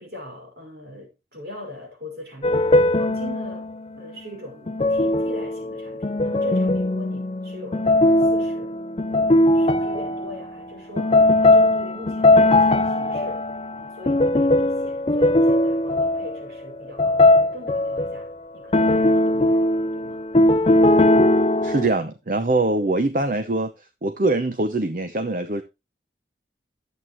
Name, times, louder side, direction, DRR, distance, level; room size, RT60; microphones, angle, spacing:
voice 1, 0.0-3.7 4.0-8.7 9.2-13.4 13.7-20.3, left 1 dB, 65° right, 5.2 m, -41 dB
sound 1, 2.4-3.8 4.7-10.5 11.0-18.3 18.7-21.9, left 2 dB, 35° left, 0.5 m, -19 dB
voice 2, 21.6-23.7 24.0-25.6, right 2 dB, 50° right, 0.8 m, -23 dB
11.0 x 8.2 x 3.1 m
head